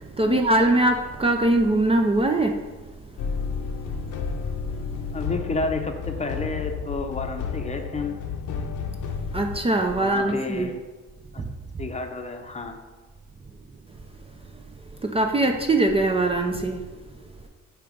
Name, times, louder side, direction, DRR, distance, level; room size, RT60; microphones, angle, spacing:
voice 1, 0.2-2.6 9.3-10.7 11.4-11.5 15.0-16.8, right 2 dB, 20° right, 3 dB, 0.5 m, -21 dB
sound 1, 3.2-9.6, left 5 dB, 80° left, 0.8 m, -31 dB
voice 2, 5.1-8.2 9.9-10.8 11.3-11.4 11.8-12.8, left 3 dB, 20° left, 5 dB, 0.7 m, -31 dB
8.6 x 2.9 x 5.0 m, 1.3 s
cardioid pair, 90°, 30 cm